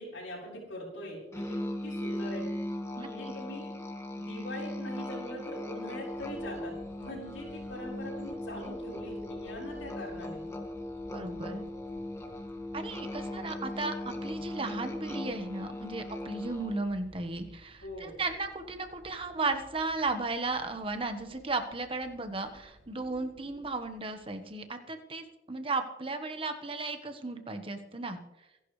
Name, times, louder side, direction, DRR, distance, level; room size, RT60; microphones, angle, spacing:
voice 1, 0.0-1.6 1.8-2.4 3.0-3.7 4.1-10.4 13.1-13.5 17.8-18.2, left 1 dB, 90° left, -7 dB, 5.7 m, -42 dB
Musical instrument, 1.3-16.9, left 1 dB, 15° left, 1.9 m, -38 dB
voice 2, 3.0-3.3 11.1-11.7 12.7-28.2, right 3 dB, 30° right, 7 dB, 1.3 m, -35 dB
sound 1, 6.1-24.6, equal, 75° right, 2.3 m, -56 dB
27.0 x 11.5 x 3.3 m, 0.99 s
head